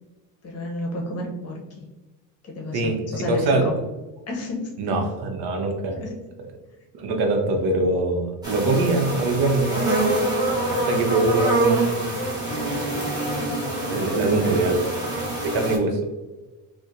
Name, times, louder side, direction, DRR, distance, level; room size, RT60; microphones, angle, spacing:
voice 1, 0.4-1.9 2.4-3.8 4.3-4.7 6.0-6.2 10.9-11.1 13.9-14.5, left 2 dB, 35° left, 0 dB, 0.8 m, -31 dB
voice 2, 3.3-3.6 4.8-6.0 6.9-9.9 10.7-12.2 12.6-13.0 13.9-14.8 15.4-16.0, right 2 dB, 65° right, 4 dB, 0.7 m, -23 dB
sound 1, 8.4-15.8, right 2 dB, 10° right, 0.9 m, -25 dB
4.3 x 2.2 x 2.5 m, 1.1 s
cardioid pair, 130°, 41 cm